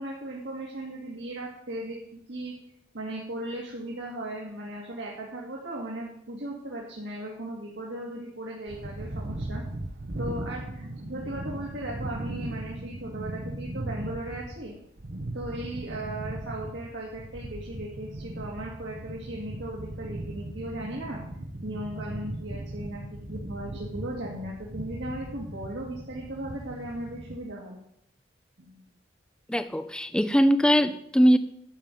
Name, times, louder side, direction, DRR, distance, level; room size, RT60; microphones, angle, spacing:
voice 1, 0.0-2.5 2.9-9.6 10.2-14.7 15.3-21.2 21.6-27.8 28.7-28.8, right 1 dB, 85° right, -3 dB, 2.2 m, -37 dB
sound 1, 8.7-27.4, right 1 dB, 55° right, 0.9 m, -38 dB
voice 2, 29.5-31.4, equal, 5° left, 10 dB, 0.4 m, -21 dB
11.5 x 5.3 x 7.5 m, 0.71 s
head